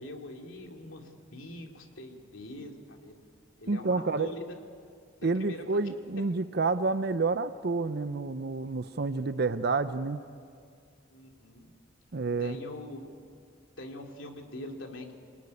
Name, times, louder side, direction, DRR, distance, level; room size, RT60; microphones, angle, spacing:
voice 1, 0.0-3.2 3.6-4.4 5.2-5.8 11.1-11.7 12.4-13.1 13.8-15.2, left 1 dB, 75° left, 2 dB, 2.9 m, -43 dB
voice 2, 3.7-4.3 5.2-10.2 12.1-12.6, right 3 dB, 55° right, 12 dB, 0.7 m, -29 dB
27.0 x 19.0 x 9.7 m, 2.2 s
head